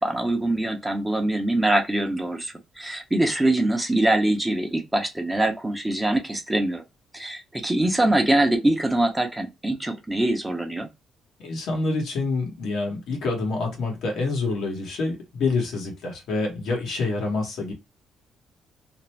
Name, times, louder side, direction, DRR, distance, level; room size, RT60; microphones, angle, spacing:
voice 1, 0.0-6.8 7.1-10.9, right 1 dB, 10° right, 0.7 m, -23 dB
voice 2, 11.4-17.7, left 3 dB, 80° left, 1.1 m, -27 dB
2.6 x 2.0 x 3.2 m
cardioid pair, 90°, 0 cm